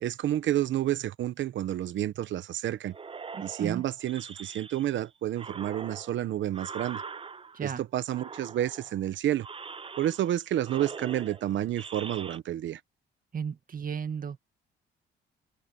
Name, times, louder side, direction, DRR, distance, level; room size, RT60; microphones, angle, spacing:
voice 1, 0.0-2.9 3.4-7.0 7.6-9.5 10.0-12.8, right 12 dB, 70° right, 1.0 m, -30 dB
sound 1, 2.9-5.0 5.3-7.7 8.1-9.0 9.4-10.4 10.6-12.4, right 5 dB, 25° right, 0.7 m, -43 dB
voice 2, 3.3-3.8 7.5-7.8 13.3-14.4, right 6 dB, 45° right, 2.1 m, -34 dB
open air
cardioid pair, 90°, 20 cm